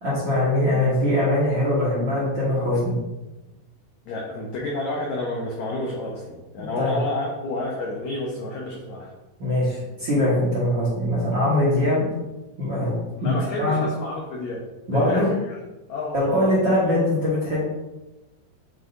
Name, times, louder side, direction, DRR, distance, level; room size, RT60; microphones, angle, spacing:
voice 1, 0.0-3.0 6.8-6.9 9.4-12.0 12.6-12.9 13.2-13.8 14.9-15.3 16.1-17.6, left 1 dB, 45° right, -9 dB, 1.5 m, -22 dB
voice 2, 4.1-9.1 13.2-15.6 15.9-16.5, left 2 dB, 85° left, -2 dB, 1.6 m, -30 dB
9.7 x 3.7 x 2.7 m, 1.1 s
omnidirectional pair, 4.4 m